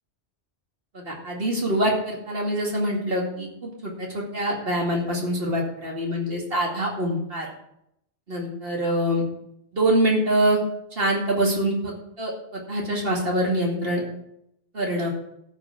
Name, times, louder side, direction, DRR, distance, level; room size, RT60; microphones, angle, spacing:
voice 1, 1.1-7.5 8.3-9.2 9.7-10.6 11.0-11.9 12.2-12.3 12.7-14.0 14.7-15.1, right 1 dB, 55° right, -1 dB, 2.6 m, -24 dB
13.0 x 6.0 x 6.2 m, 0.77 s
omnidirectional pair, 1.2 m